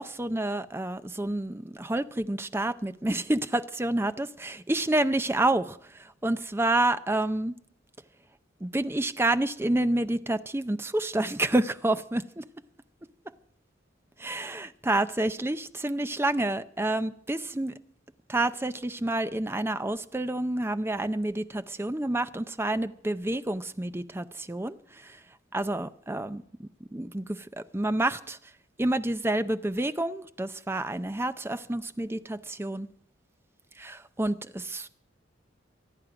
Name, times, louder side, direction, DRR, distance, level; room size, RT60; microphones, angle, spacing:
voice 1, 0.0-7.6 8.6-12.4 14.2-17.7 18.3-25.2 25.5-28.4 28.8-32.9 33.8-34.9, right 2 dB, 10° right, 0.5 m, -29 dB
26.0 x 9.3 x 5.0 m
head